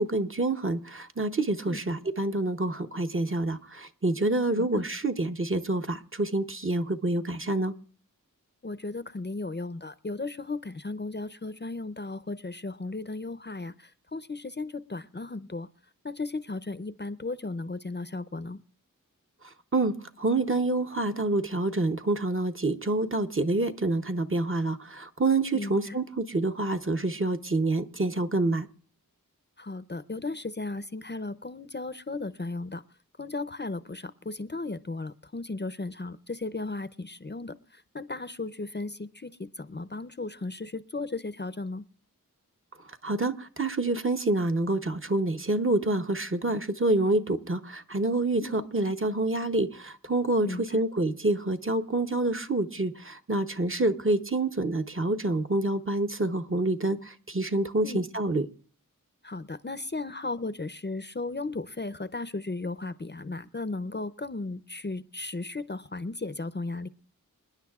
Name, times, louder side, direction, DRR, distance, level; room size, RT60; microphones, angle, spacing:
voice 1, 0.0-7.7 19.7-28.7 43.0-58.5, right 2 dB, 35° right, 0.8 m, -27 dB
voice 2, 8.6-15.7 16.0-18.6 25.5-26.0 29.6-32.8 33.2-41.8 48.4-48.7 50.4-50.8 57.8-58.1 59.2-66.9, left 3 dB, 30° left, 0.6 m, -35 dB
27.0 x 10.0 x 2.4 m
wide cardioid pair, 50°, 34 cm